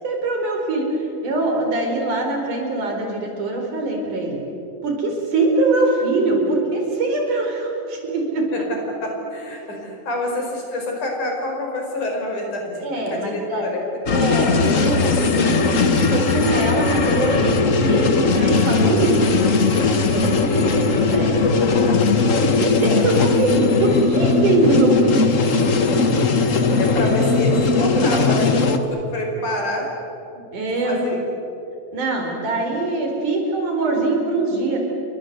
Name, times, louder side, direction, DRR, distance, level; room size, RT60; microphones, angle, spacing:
voice 1, 0.0-1.0 1.2-4.4 4.8-8.5 9.7-9.8 12.8-13.7 14.1-19.3 20.0-21.3 22.0-25.4 25.8-26.1 30.3-31.0 31.9-34.8, right 2 dB, 75° right, 2 dB, 6.0 m, -23 dB
voice 2, 9.0-12.8 13.1-13.8 20.3-20.7 22.8-23.8 26.8-29.9 30.6-31.2, left 1 dB, 75° left, 1 dB, 6.5 m, -27 dB
sound 1, 14.1-28.8, left 4 dB, 55° left, 0.8 m, -18 dB
29.0 x 23.5 x 8.2 m, 2.9 s
omnidirectional pair, 3.6 m